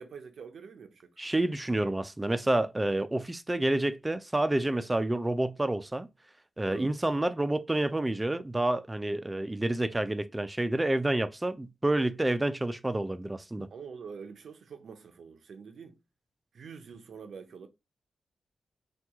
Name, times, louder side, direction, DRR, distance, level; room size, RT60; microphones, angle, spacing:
voice 1, 0.0-1.1 6.7-6.9 13.7-16.0 16.5-17.7, right 6 dB, 80° right, 0.5 m, -45 dB
voice 2, 1.2-6.1 6.6-13.7, right 1 dB, 20° right, 0.4 m, -29 dB
2.8 x 2.3 x 3.5 m
cardioid pair, 60°, 0 cm